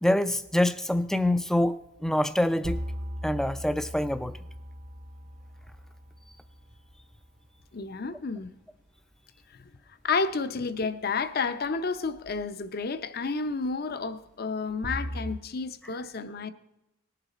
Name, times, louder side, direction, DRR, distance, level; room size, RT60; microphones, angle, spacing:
voice 1, 0.0-2.8 3.2-4.4, left 1 dB, ahead, 0.3 m, -25 dB
sound 1, 1.8-1.9 2.6-7.1 12.2-12.4 14.8-15.4, equal, 40° right, 0.6 m, -38 dB
voice 2, 7.7-8.5 10.0-16.5, left 4 dB, 50° left, 0.6 m, -31 dB
19.0 x 6.8 x 4.1 m
head